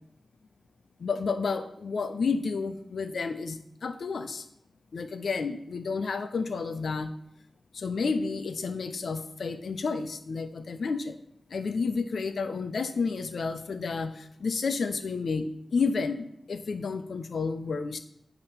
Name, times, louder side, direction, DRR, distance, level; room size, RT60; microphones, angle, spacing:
voice 1, 1.0-4.4 4.9-7.1 7.7-11.1 11.5-18.0, left 4 dB, 85° left, 9 dB, 0.6 m, -31 dB
8.7 x 3.0 x 6.0 m, 0.72 s
wide cardioid pair, 75°, 0 cm